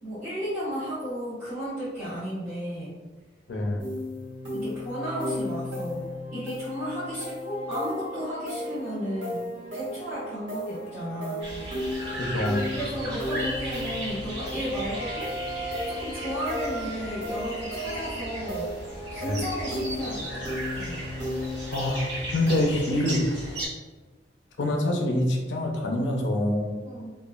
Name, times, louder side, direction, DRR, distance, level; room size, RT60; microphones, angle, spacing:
voice 1, 0.0-3.0 4.5-9.5 9.7-11.4 11.9-12.2 12.7-15.3 15.9-18.7 19.1-21.0 26.8-27.1, equal, 15° right, -15 dB, 1.0 m, -34 dB
voice 2, 3.5-3.9 12.2-12.6 19.2-19.4 21.7-22.0 22.3-23.3 24.6-26.7, left 1 dB, 75° left, 1 dB, 0.5 m, -25 dB
sound 1, 3.8-22.6, left 1 dB, 85° right, 1.2 m, -35 dB
sound 2, 11.4-23.7, right 1 dB, 70° right, 0.9 m, -36 dB
Wind instrument woodwind instrument, 14.9-18.7, right 2 dB, 20° left, 0.8 m, -39 dB
2.9 x 2.3 x 2.4 m, 1.3 s
head